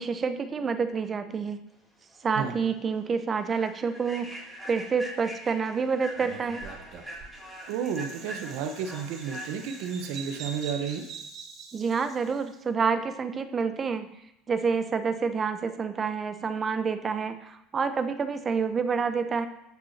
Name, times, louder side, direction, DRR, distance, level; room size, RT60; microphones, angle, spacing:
voice 1, 0.0-1.6 2.2-4.3 4.6-6.7 11.7-14.1 14.5-19.5, right 5 dB, 30° right, 10 dB, 0.8 m, -28 dB
Human voice / Train, 2.1-2.2 2.7-2.9 3.4-11.0, equal, ahead, 4.0 m, -43 dB
Bird vocalization bird call bird song, 6.2-12.4, right 5 dB, 50° right, 2.0 m, -44 dB
voice 2, 7.7-11.1, right 7 dB, 70° right, 7 dB, 1.0 m, -32 dB
16.0 x 6.1 x 2.9 m, 0.86 s
hypercardioid pair, 90°, 0 cm